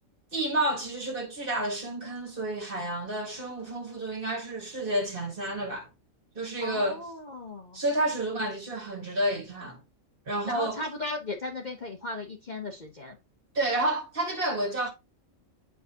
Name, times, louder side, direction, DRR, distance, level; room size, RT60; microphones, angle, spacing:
voice 1, 0.3-5.9 6.3-7.0 7.7-9.8 10.3-10.8 13.5-14.9, right 1 dB, 40° right, 1.7 m, -30 dB
voice 2, 6.6-7.8 10.4-13.2, left 2 dB, 40° left, 0.8 m, -36 dB
8.2 x 4.6 x 2.8 m
omnidirectional pair, 1.4 m